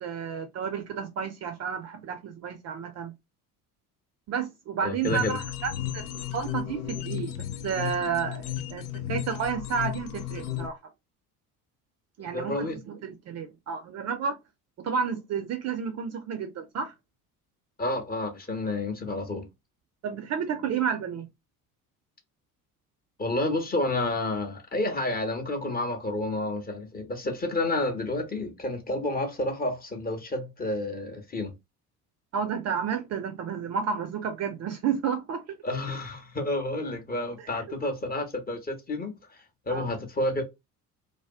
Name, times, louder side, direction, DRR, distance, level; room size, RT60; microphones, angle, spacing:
voice 1, 0.0-3.1 4.3-10.8 12.2-14.4 14.8-16.9 20.0-21.3 32.3-35.4 39.7-39.9, right 7 dB, 35° right, 0.5 m, -31 dB
voice 2, 4.8-5.4 12.2-12.8 17.8-19.5 23.2-31.5 35.6-40.4, left 2 dB, 20° left, 0.7 m, -30 dB
sound 1, 5.0-10.7, left 12 dB, 75° left, 0.5 m, -34 dB
2.4 x 2.2 x 2.3 m
figure-of-eight pair, 55°, 47 cm